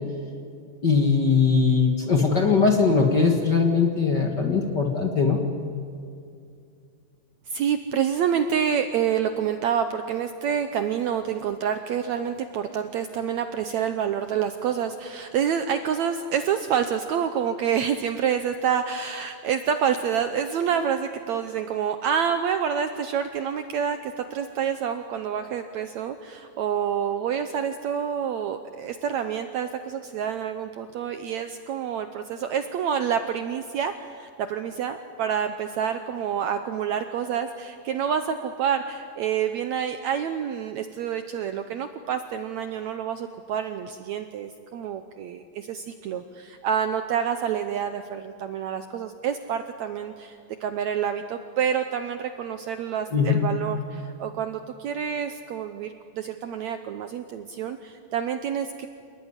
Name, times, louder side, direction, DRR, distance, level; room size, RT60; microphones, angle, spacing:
voice 1, 0.8-5.4 53.1-53.4, left 5 dB, 40° left, 2 dB, 1.7 m, -20 dB
voice 2, 7.5-58.9, right 8 dB, 75° right, 8 dB, 1.7 m, -28 dB
27.5 x 19.5 x 9.8 m, 2.4 s
omnidirectional pair, 4.1 m